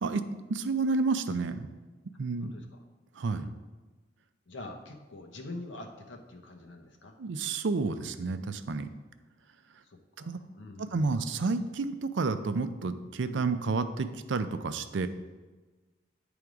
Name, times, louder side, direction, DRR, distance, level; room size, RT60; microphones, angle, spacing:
voice 1, 0.5-1.7 2.2-2.5 3.2-3.4 7.2-8.9 10.2-10.4 10.8-15.1, right 4 dB, 80° right, 10 dB, 0.5 m, -30 dB
voice 2, 2.4-2.8 3.3-3.6 4.5-7.2 9.8-11.1 13.2-13.4, left 2 dB, 85° left, 3 dB, 0.9 m, -45 dB
9.2 x 3.5 x 4.8 m, 1.3 s
head